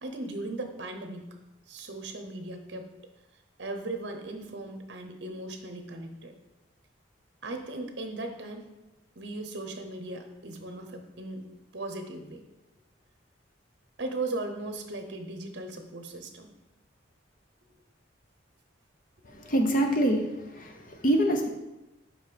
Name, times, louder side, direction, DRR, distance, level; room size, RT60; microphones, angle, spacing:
voice 1, 0.0-1.3 1.7-2.9 3.6-6.3 7.4-8.7 9.2-12.4 14.0-16.5, right 2 dB, 60° right, 5 dB, 0.8 m, -37 dB
voice 2, 19.4-20.2 20.6-21.5, right 1 dB, 45° left, 3 dB, 0.8 m, -25 dB
5.4 x 5.1 x 5.1 m, 0.98 s
head